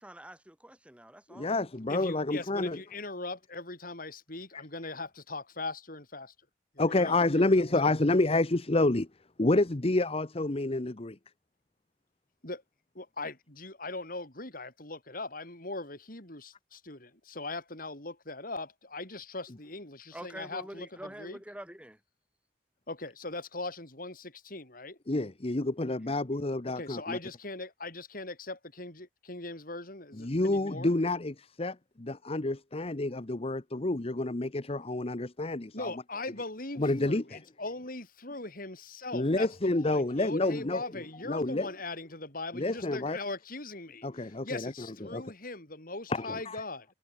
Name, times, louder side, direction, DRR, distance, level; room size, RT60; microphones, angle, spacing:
voice 1, 0.0-1.5 20.1-22.0, right 1 dB, 5° right, 3.4 m, -46 dB
voice 2, 1.3-2.8 6.8-9.1 9.4-11.2 25.1-27.2 30.2-35.9 36.8-37.4 39.1-40.8 41.3-41.7 42.5-43.2 44.0-44.7 45.0-45.2 46.1-46.6, left 2 dB, 35° left, 1.0 m, -29 dB
voice 3, 1.9-6.3 6.7-7.7 12.4-12.6 12.9-21.4 22.9-25.0 26.6-30.9 35.7-39.5 39.8-46.9, left 2 dB, 55° left, 8.0 m, -40 dB
head